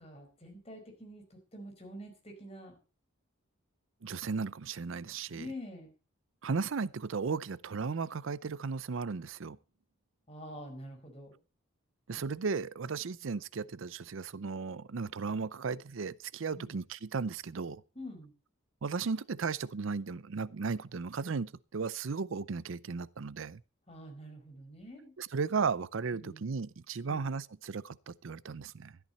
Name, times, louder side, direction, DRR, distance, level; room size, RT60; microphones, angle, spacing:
voice 1, 0.0-2.8 5.3-5.9 10.3-11.4 16.5-16.7 17.9-18.3 23.9-25.1 26.1-26.4 27.1-27.3, equal, 30° left, 4.9 m, -47 dB
voice 2, 4.0-5.5 6.4-9.6 12.1-17.8 18.8-23.6 25.2-29.0, right 5 dB, 65° right, 0.5 m, -35 dB
13.5 x 12.0 x 4.2 m
head